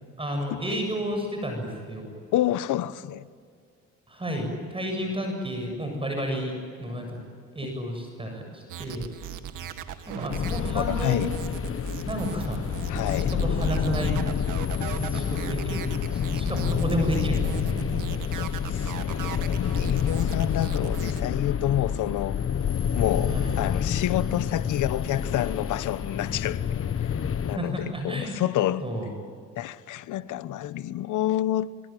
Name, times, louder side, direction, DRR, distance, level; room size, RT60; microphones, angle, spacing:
voice 1, 0.2-2.1 4.1-7.2 7.5-9.1 10.1-11.2 11.7-11.8 12.0-12.7 13.3-14.2 14.9-15.8 16.1-18.2 23.3-23.6 27.5-28.4 28.8-29.1, equal, 20° right, 7.5 m, -31 dB
voice 2, 2.3-3.3 10.6-11.3 12.9-13.4 18.4-22.4 22.9-28.9 29.6-31.7, left 12 dB, 80° left, 1.0 m, -29 dB
sound 1, 8.7-21.2, right 9 dB, 85° right, 2.1 m, -38 dB
sound 2, 10.3-27.6, left 7 dB, 45° left, 1.2 m, -28 dB
25.0 x 25.0 x 9.2 m
cardioid pair, 90°, 30 cm